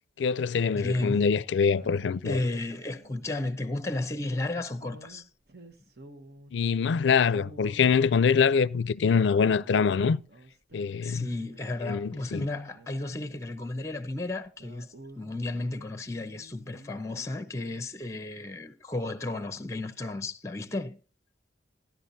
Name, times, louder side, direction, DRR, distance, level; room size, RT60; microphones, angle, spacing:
voice 1, 0.2-2.4 6.5-10.2 10.7-11.3 11.8-12.5, left 6 dB, 80° left, 0.4 m, -24 dB
voice 2, 0.7-1.3 2.2-5.2 11.0-14.9 15.2-21.0, left 2 dB, 15° left, 0.7 m, -33 dB
sound 1, 1.7-3.5 4.8-6.7 7.2-9.0 9.5-12.2 12.5-13.7 14.0-14.1 14.4-17.4 17.6-17.9, right 1 dB, 55° right, 1.3 m, -52 dB
14.5 x 10.5 x 2.6 m
head